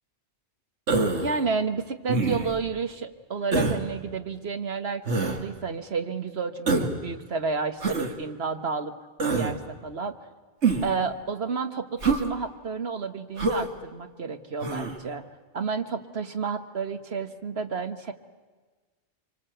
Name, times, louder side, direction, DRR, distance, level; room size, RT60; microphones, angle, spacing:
Human voice, 0.9-1.4 2.1-2.6 3.5-3.8 5.1-5.4 6.7-7.0 7.8-8.1 9.2-9.5 10.6-11.0 12.0-12.3 13.4-13.7 14.6-14.9, right 3 dB, 80° right, 2.3 m, -25 dB
voice 1, 1.2-5.0 5.4-8.9 9.3-10.1 10.8-15.2 15.5-18.1, right 5 dB, 65° right, 7 dB, 1.6 m, -31 dB
26.0 x 25.0 x 8.0 m, 1.4 s
omnidirectional pair, 1.1 m